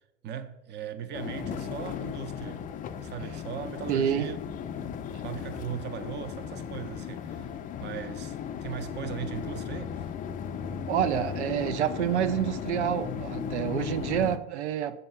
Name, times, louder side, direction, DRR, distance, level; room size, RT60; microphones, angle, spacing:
voice 1, 0.2-2.6 3.0-4.4 5.2-7.5 7.8-10.1, right 8 dB, 30° right, 0.6 m, -38 dB
sound 1, 1.1-14.4, left 7 dB, 25° left, 0.4 m, -36 dB
voice 2, 3.9-4.3 10.9-14.9, right 10 dB, 85° right, 0.5 m, -28 dB
7.0 x 2.7 x 5.4 m
hypercardioid pair, 85°, 34 cm